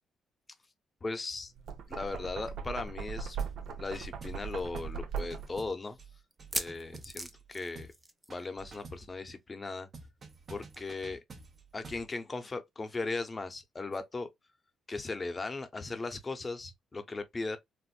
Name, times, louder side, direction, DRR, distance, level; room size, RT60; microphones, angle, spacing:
voice 1, 1.0-1.5 1.9-3.4 3.8-6.0 6.5-7.9 8.3-9.9 10.5-11.2 11.7-14.3 14.9-17.6, left 3 dB, 30° left, 0.8 m, -38 dB
Knock, 1.5-5.7, right 6 dB, 70° right, 0.8 m, -39 dB
sound 1, 3.4-3.7 3.9-4.5 4.8-5.0 5.3-7.5 7.8-8.0 8.3-9.1 9.9-12.1, right 3 dB, 40° right, 1.1 m, -50 dB
sound 2, 3.6-3.7 4.0-4.1 4.7-4.8 6.3-8.4 8.7-8.9 9.2-9.3 10.7-10.8, right 1 dB, 15° right, 0.6 m, -39 dB
4.3 x 2.4 x 2.3 m
cardioid pair, 90°, 0 cm